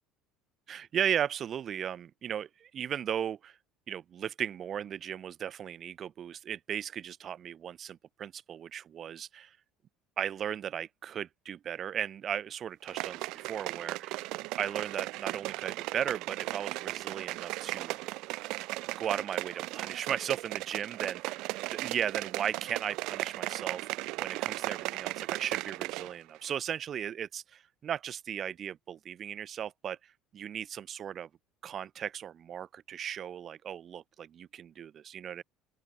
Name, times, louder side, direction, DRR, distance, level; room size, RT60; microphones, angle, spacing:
voice 1, 0.7-3.6 3.9-9.6 10.2-14.3 14.6-18.0 19.0-21.2 21.7-23.8 24.2-30.0 30.3-31.3 31.6-35.4, right 9 dB, 45° right, 6.4 m, -36 dB
sound 1, 12.9-26.2 26.4-26.5, right 21 dB, 70° right, 2.3 m, -36 dB
open air
supercardioid pair, 100°, 0 cm